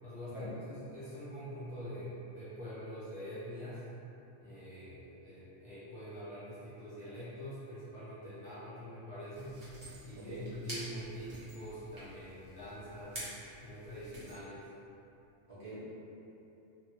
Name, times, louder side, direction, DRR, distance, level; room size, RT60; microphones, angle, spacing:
voice 1, 0.0-3.8 4.4-9.6 10.0-13.3 13.6-14.7, equal, 40° left, -13 dB, 0.7 m, -45 dB
sound 1, 9.3-14.4, right 1 dB, 35° right, 0.8 m, -48 dB
voice 2, 10.1-10.5 15.5-15.8, right 2 dB, 60° right, -13 dB, 1.4 m, -44 dB
2.7 x 2.6 x 2.8 m, 2.9 s
omnidirectional pair, 1.3 m